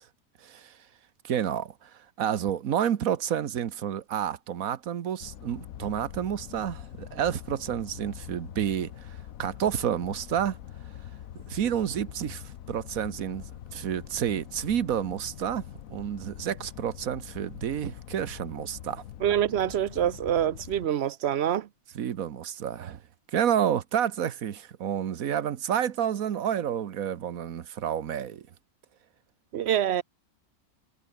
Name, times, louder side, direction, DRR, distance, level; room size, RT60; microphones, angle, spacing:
voice 1, 0.4-0.7 1.2-1.9 2.2-8.9 9.4-10.6 11.3-13.4 13.7-19.0 21.9-23.0 23.3-28.5, right 9 dB, 80° right, 1.4 m, -29 dB
sound 1, 5.2-20.9, left 11 dB, 80° left, 1.3 m, -44 dB
voice 2, 19.2-21.7 29.5-30.0, right 10 dB, 60° right, 0.8 m, -26 dB
omnidirectional pair, 1.5 m